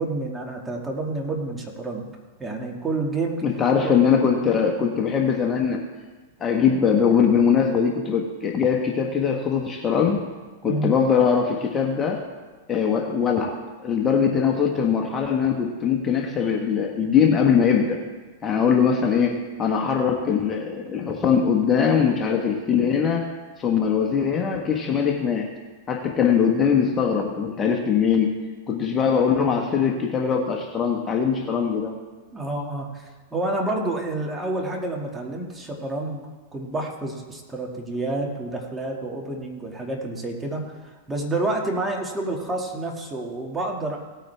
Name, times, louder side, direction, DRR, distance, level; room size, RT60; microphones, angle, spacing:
voice 1, 0.0-2.1 2.4-3.4 3.8-3.9 10.6-10.9 32.3-36.3 36.5-44.0, right 2 dB, 15° right, 0 dB, 2.1 m, -29 dB
voice 2, 3.4-5.8 6.4-10.2 10.6-12.2 12.7-13.6 13.8-18.0 18.4-23.3 23.6-25.5 25.9-28.3 28.7-32.0, left 7 dB, 25° left, 2 dB, 1.3 m, -21 dB
17.5 x 9.1 x 3.5 m, 1.3 s
hypercardioid pair, 115°, 0 cm